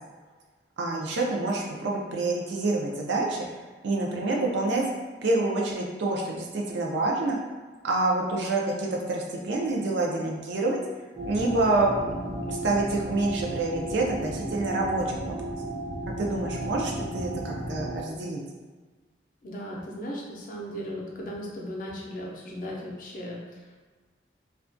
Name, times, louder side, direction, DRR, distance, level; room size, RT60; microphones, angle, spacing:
voice 1, 0.8-4.8 5.2-7.4 7.8-10.8 11.2-15.3 16.1-18.4, right 2 dB, 80° right, -1 dB, 0.5 m, -27 dB
sound 1, 11.1-18.0, right 1 dB, 25° right, 0.6 m, -34 dB
voice 2, 19.4-23.7, equal, 50° left, -2 dB, 0.5 m, -37 dB
2.3 x 2.2 x 2.5 m, 1.3 s
head